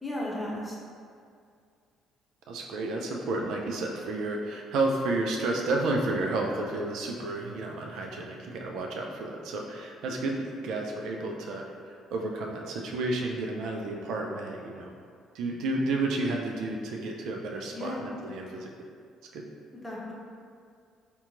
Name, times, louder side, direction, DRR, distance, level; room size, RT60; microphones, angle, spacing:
voice 1, 0.0-0.8 17.7-18.1 19.7-20.1, left 1 dB, 15° left, -5 dB, 0.9 m, -35 dB
voice 2, 2.5-14.9 15.3-18.7 19.3-19.4, right 2 dB, 65° right, 0 dB, 0.3 m, -31 dB
2.8 x 2.2 x 3.6 m, 2.2 s
hypercardioid pair, 50°, 0 cm